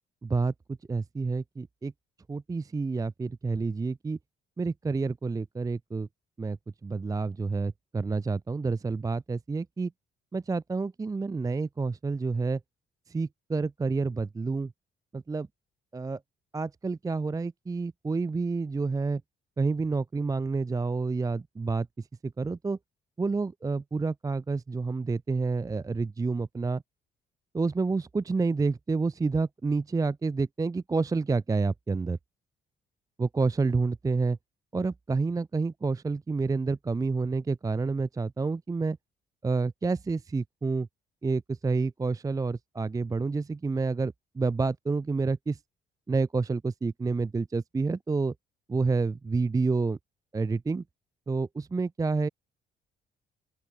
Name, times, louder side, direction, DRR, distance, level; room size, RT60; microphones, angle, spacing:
voice 1, 0.2-0.5 0.9-1.9 2.3-4.2 4.6-6.1 6.4-6.6 6.8-9.9 10.3-12.6 13.1-14.7 15.1-15.5 15.9-16.2 16.5-19.2 19.6-21.9 22.2-22.8 23.2-26.8 27.5-32.2 33.2-34.4 34.7-39.0 39.4-40.9 41.2-45.6 46.1-48.3 48.7-50.0 50.3-50.8 51.3-52.3, right 4 dB, 15° right, 0.5 m, -29 dB
open air
cardioid pair, 90°, 20 cm